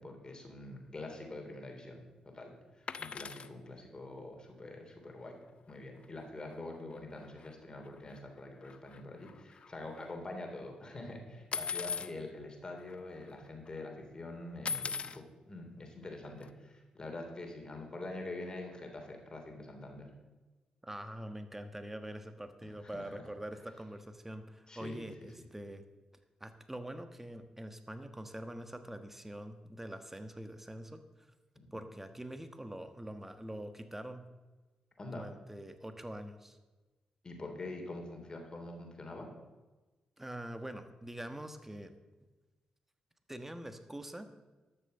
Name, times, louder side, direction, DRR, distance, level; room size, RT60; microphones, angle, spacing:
voice 1, 0.0-5.4 5.7-20.1 22.8-23.2 24.7-25.3 31.7-31.8 35.0-35.3 37.2-39.3, left 2 dB, 35° left, 3 dB, 3.3 m, -45 dB
sound 1, 2.9-3.5 5.7-5.8 6.0-6.2 6.5-6.6 7.4-7.5 8.0-8.4 8.6-10.1 11.5-12.1 12.9-13.0 13.2-13.7 14.7-15.2 16.4-16.5, left 5 dB, 55° left, 0.6 m, -39 dB
voice 2, 20.8-25.8 26.4-31.3 31.7-34.2 35.1-36.6 40.2-41.9 43.3-44.3, right 1 dB, 10° right, 8 dB, 1.3 m, -44 dB
12.5 x 6.7 x 6.6 m, 1.2 s
supercardioid pair, 50°, 2 cm